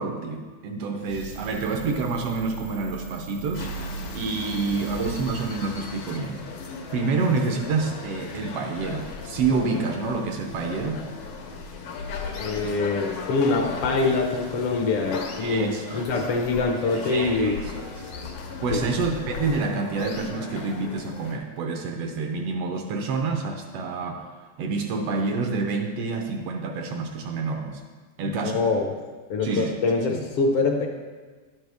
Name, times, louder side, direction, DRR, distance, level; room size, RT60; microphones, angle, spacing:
voice 1, 0.0-3.7 4.1-6.4 6.9-11.0 15.4-16.2 17.0-18.1 18.6-24.3 24.6-27.8 28.2-28.6 29.4-29.7 30.1-30.2, right 4 dB, 75° right, 4 dB, 1.5 m, -28 dB
sound 1, 1.0-6.4, right 7 dB, 55° right, 1.0 m, -39 dB
sound 2, 3.5-21.4, left 4 dB, 90° left, 2.5 m, -36 dB
voice 2, 12.4-17.6 18.7-18.8 28.2-28.9 29.3-30.9, left 3 dB, 70° left, 2 dB, 1.4 m, -24 dB
12.0 x 7.9 x 3.4 m, 1.4 s
omnidirectional pair, 3.3 m